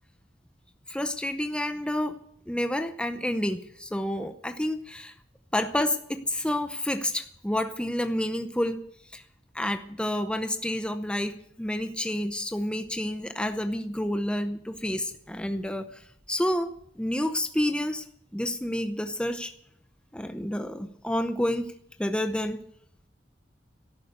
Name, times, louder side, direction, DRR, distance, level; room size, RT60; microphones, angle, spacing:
voice 1, 0.9-2.2 2.5-5.1 5.5-8.9 9.1-9.2 9.5-16.7 17.0-18.1 18.3-19.5 20.1-21.7 22.0-22.6, left 1 dB, 5° left, 8 dB, 0.7 m, -29 dB
13.0 x 11.5 x 8.1 m, 0.70 s
head